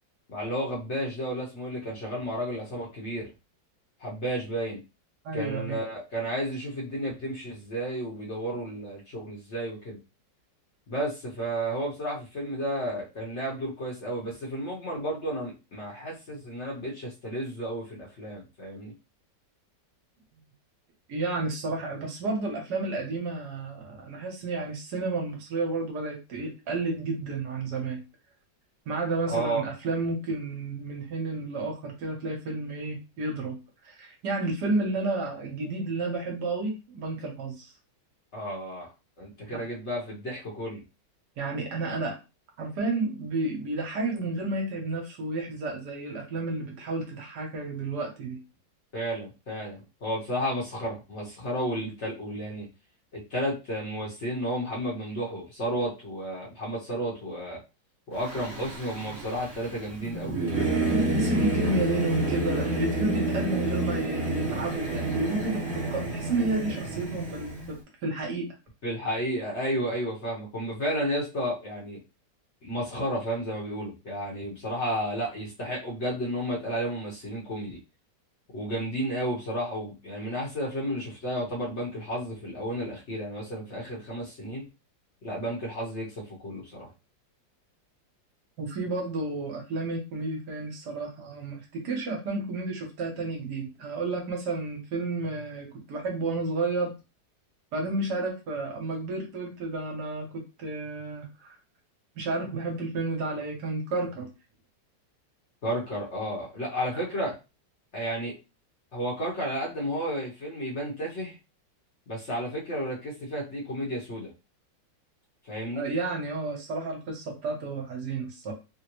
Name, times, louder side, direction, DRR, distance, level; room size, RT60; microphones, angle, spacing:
voice 1, 0.3-3.3 4.0-4.8 5.3-10.0 10.9-18.9 29.3-29.6 38.3-38.9 39.2-40.8 48.9-52.7 53.1-57.6 58.1-60.4 68.8-72.0 72.6-77.8 78.5-84.6 85.2-86.9 105.6-107.4 107.9-108.3 108.9-111.3 112.1-114.3 115.5-115.8, equal, 45° left, -4 dB, 1.1 m, -32 dB
voice 2, 5.2-5.8 21.1-28.0 28.9-37.7 39.5-39.6 41.4-42.2 42.6-48.4 60.8-68.5 88.6-96.9 97.7-101.6 102.2-104.3 115.7-118.5, right 3 dB, 70° right, 1 dB, 1.4 m, -31 dB
Singing / Musical instrument, 58.2-67.7, right 2 dB, 40° right, 1.2 m, -29 dB
3.8 x 2.1 x 2.9 m, 0.28 s
omnidirectional pair, 1.9 m